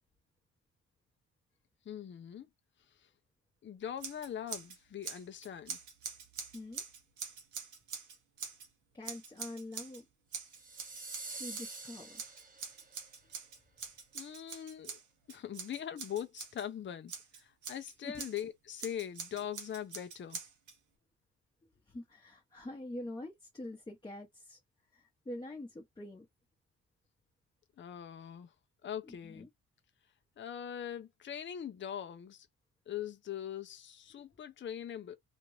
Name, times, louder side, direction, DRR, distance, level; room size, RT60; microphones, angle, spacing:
voice 1, 1.9-2.5 3.6-5.8 14.1-15.0 15.3-20.4 27.8-28.5 28.8-29.5 30.4-32.5 32.9-35.2, left 9 dB, 40° left, 0.6 m, -42 dB
Scissors, 4.0-4.8 5.0-8.7 9.0-10.0 10.3-11.8 12.2-16.6 17.1-18.4 18.8-20.8, right 6 dB, 70° right, 1.2 m, -45 dB
voice 2, 6.5-6.8 8.9-10.1 11.4-12.2 18.0-18.3 21.9-24.6 24.9-26.3 29.1-29.5 34.1-34.2, left 1 dB, 15° left, 1.0 m, -45 dB
sound 1, 10.5-12.9, right 3 dB, 30° right, 1.2 m, -46 dB
3.0 x 2.6 x 3.1 m
cardioid pair, 100°, 30 cm